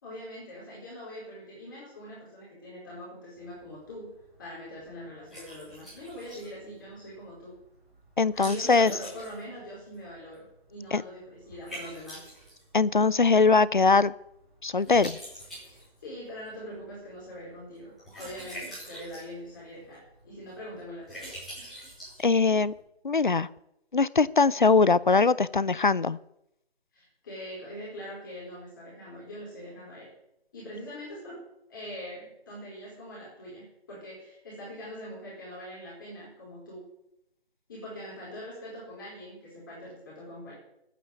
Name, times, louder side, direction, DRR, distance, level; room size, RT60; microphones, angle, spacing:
voice 1, 0.0-4.1 4.4-7.6 8.3-12.3 16.0-21.3 26.9-30.1 30.5-31.4 31.7-36.8 37.7-40.5, equal, 20° left, -7 dB, 4.4 m, -43 dB
Liquid, 3.4-22.8, equal, ahead, 4.5 m, -47 dB
voice 2, 8.2-8.9 10.9-11.0 12.7-14.1 14.6-15.2 22.2-22.7 23.0-23.5 23.9-26.2, left 4 dB, 50° left, 20 dB, 0.5 m, -21 dB
14.5 x 9.2 x 7.9 m, 0.81 s
figure-of-eight pair, 175°, 32 cm